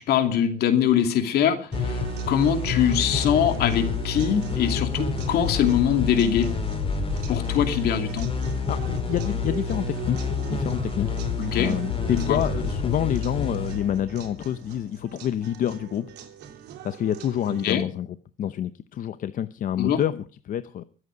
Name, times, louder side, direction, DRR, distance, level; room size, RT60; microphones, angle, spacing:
voice 1, 0.0-2.0 2.3-6.5 7.3-8.3 11.4-11.8 12.3-12.4 17.6-17.8 19.8-20.0, left 9 dB, 70° left, 7 dB, 2.6 m, -23 dB
sound 1, 1.7-15.0, left 5 dB, 30° left, 4.6 m, -29 dB
sound 2, 1.7-17.7, right 10 dB, 75° right, 3.4 m, -42 dB
sound 3, 2.7-7.7, left 3 dB, ahead, 3.5 m, -40 dB
voice 2, 8.5-10.2 10.5-11.1 11.5-16.1 16.8-18.1 18.4-20.8, left 10 dB, 55° left, 13 dB, 0.7 m, -28 dB
24.0 x 8.2 x 5.1 m, 0.39 s
cardioid pair, 110°, 17 cm